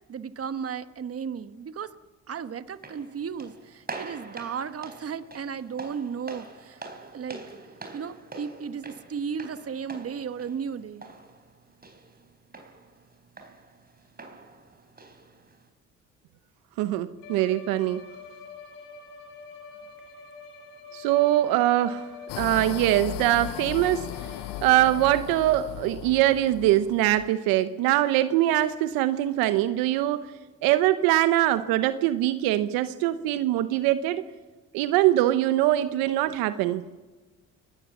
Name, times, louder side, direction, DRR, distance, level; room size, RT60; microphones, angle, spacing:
voice 1, 0.1-1.9 2.3-6.8 7.1-7.4 7.9-11.1, right 7 dB, 45° right, 11 dB, 1.3 m, -34 dB
sound 1, 2.7-15.7, right 3 dB, 25° right, 4.1 m, -45 dB
voice 2, 16.8-18.0 20.9-22.1 22.4-24.0 24.6-30.3 30.6-34.2 34.7-36.8, right 14 dB, 80° right, 12 dB, 0.9 m, -23 dB
Bowed string instrument, 17.2-25.5, left 5 dB, 85° left, 4.7 m, -45 dB
sound 2, 22.3-27.3, left 16 dB, 70° left, 0.7 m, -37 dB
29.5 x 19.0 x 7.2 m, 1.3 s
supercardioid pair, 65°, 34 cm